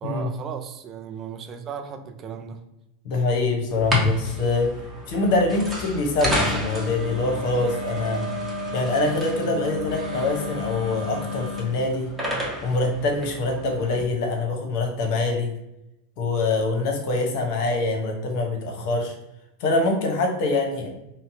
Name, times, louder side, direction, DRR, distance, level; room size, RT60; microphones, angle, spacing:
voice 1, 0.0-2.6 9.4-9.6, right 7 dB, 35° right, 6 dB, 0.4 m, -36 dB
voice 2, 3.0-4.7 5.1-8.3 8.7-12.1 12.6-15.5 16.2-19.1 19.6-20.9, left 2 dB, 55° left, 3 dB, 0.8 m, -24 dB
sound 1, 3.7-14.0, left 2 dB, 10° right, 1.1 m, -30 dB
3.9 x 2.1 x 2.7 m, 0.88 s
hypercardioid pair, 85°, 0 cm